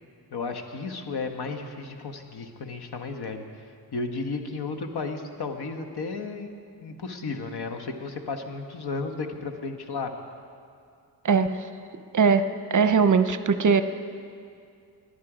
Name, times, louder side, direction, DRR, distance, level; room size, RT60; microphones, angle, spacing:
voice 1, 0.3-3.4 3.9-6.5 6.8-10.1, left 4 dB, 65° left, 5 dB, 1.4 m, -33 dB
voice 2, 11.2-11.6 12.1-13.8, right 5 dB, 45° right, 10 dB, 0.7 m, -20 dB
19.5 x 10.5 x 5.0 m, 2.3 s
cardioid pair, 75°, 42 cm